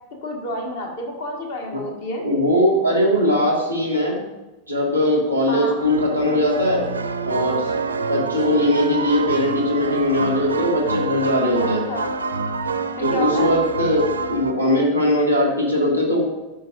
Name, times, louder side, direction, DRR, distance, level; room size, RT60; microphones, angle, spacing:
voice 1, 0.2-2.2 5.5-5.8 11.9-12.1 13.0-13.5, left 1 dB, 55° left, 2 dB, 1.4 m, -29 dB
voice 2, 2.2-4.2 4.7-6.8 7.2-7.7 8.1-11.8 13.0-16.2, left 1 dB, 90° left, -1 dB, 1.7 m, -20 dB
sound 1, 5.8-14.5, right 4 dB, 75° right, 0.4 m, -26 dB
11.5 x 5.4 x 2.5 m, 1.1 s
figure-of-eight pair, 90°, 0 cm